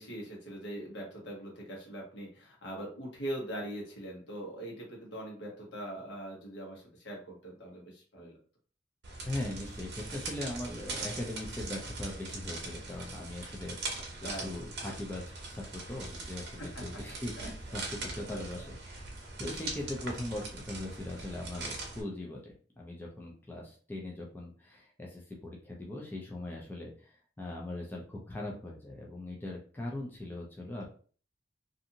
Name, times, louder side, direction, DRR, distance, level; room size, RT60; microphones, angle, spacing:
voice 1, 0.0-8.4 14.2-14.6 16.6-17.0 17.4-17.5 18.3-18.7, right 1 dB, 70° left, -2 dB, 1.1 m, -42 dB
sound 1, 9.0-22.0, right 3 dB, 60° right, 0.7 m, -41 dB
voice 2, 9.2-14.1 14.4-15.2 15.5-30.9, left 1 dB, 10° left, -2 dB, 0.4 m, -40 dB
2.6 x 2.5 x 2.7 m, 0.42 s
head